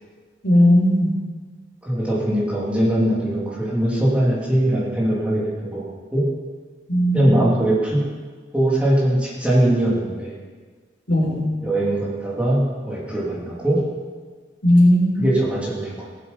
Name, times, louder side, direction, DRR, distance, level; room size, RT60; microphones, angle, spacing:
voice 1, 0.4-1.1 6.9-7.5 11.1-11.4 14.6-15.3, left 1 dB, 75° left, -2 dB, 3.4 m, -17 dB
voice 2, 1.8-6.3 7.1-8.1 8.5-10.4 11.6-13.9 15.2-16.1, right 1 dB, 5° right, -6 dB, 2.7 m, -21 dB
17.5 x 8.0 x 5.3 m, 1.5 s
head